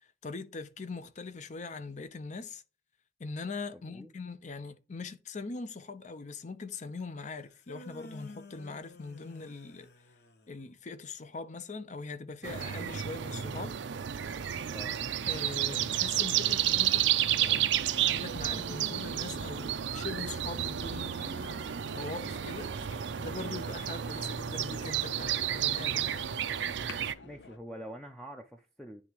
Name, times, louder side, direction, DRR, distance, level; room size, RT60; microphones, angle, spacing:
voice 1, 0.0-2.6 3.2-9.9 10.5-13.8 15.3-22.9 23.2-26.2, left 4 dB, 45° left, 0.7 m, -42 dB
voice 2, 3.7-4.1 14.7-15.0 27.2-29.0, equal, 5° left, 0.5 m, -45 dB
sound 1, 7.4-10.7 17.8-20.8, left 1 dB, 65° left, 1.0 m, -50 dB
sound 2, 12.4-27.1, right 10 dB, 85° right, 0.5 m, -31 dB
sound 3, 21.4-27.6, left 5 dB, 85° left, 0.6 m, -51 dB
10.0 x 3.5 x 2.9 m
head